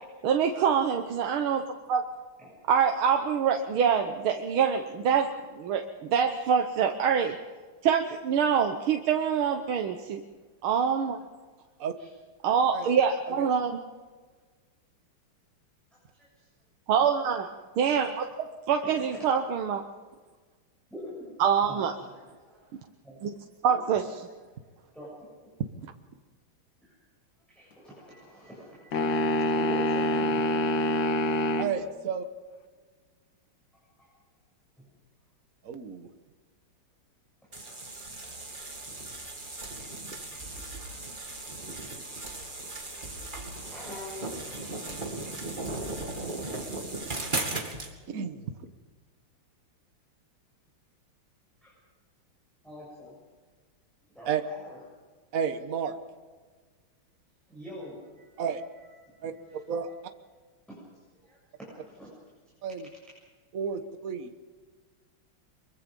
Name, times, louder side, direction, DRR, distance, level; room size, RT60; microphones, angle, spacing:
voice 1, 0.2-2.0 2.7-7.4 7.8-10.2 10.6-11.2 12.4-13.8 16.9-17.5 17.8-18.3 18.7-19.8 21.4-21.9 23.2-23.3 23.6-24.0, right 7 dB, 75° right, 5 dB, 1.9 m, -25 dB
voice 2, 15.9-16.5 19.1-19.2 20.9-21.3 21.6-22.6 23.0-23.2 23.6-24.0 24.9-25.5 26.8-27.0 27.5-30.8 34.8-34.9 38.2-38.5 40.5-40.6 43.7-44.3 51.6-51.8 52.6-53.1 54.1-54.8 57.5-58.6 59.2-59.9 60.7-62.1, equal, ahead, -7 dB, 7.8 m, -45 dB
sound 1, 28.9-31.7, left 1 dB, 60° left, 1.9 m, -26 dB
voice 3, 31.6-32.2 35.6-36.1 48.1-48.5 54.3-54.4 55.3-56.0 58.4-58.6 59.2-59.3 59.7-59.9 62.6-62.9 63.5-64.3, right 7 dB, 45° right, 8 dB, 1.5 m, -31 dB
sound 2, 37.5-47.9, right 2 dB, 20° right, 2.5 m, -37 dB
24.5 x 23.0 x 5.4 m, 1.4 s
omnidirectional pair, 2.4 m